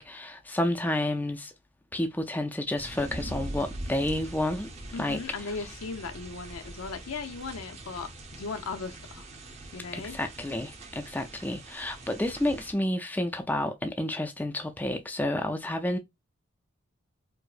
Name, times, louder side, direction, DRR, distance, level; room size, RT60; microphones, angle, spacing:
voice 1, 0.0-1.5 1.9-4.7 5.0-5.2 9.9-16.0, left 1 dB, 10° left, 0.3 m, -30 dB
sound 1, 2.8-12.7, right 1 dB, 30° right, 0.7 m, -42 dB
voice 2, 4.9-9.3 9.7-10.2, left 4 dB, 85° left, 0.6 m, -37 dB
4.5 x 2.0 x 2.4 m
head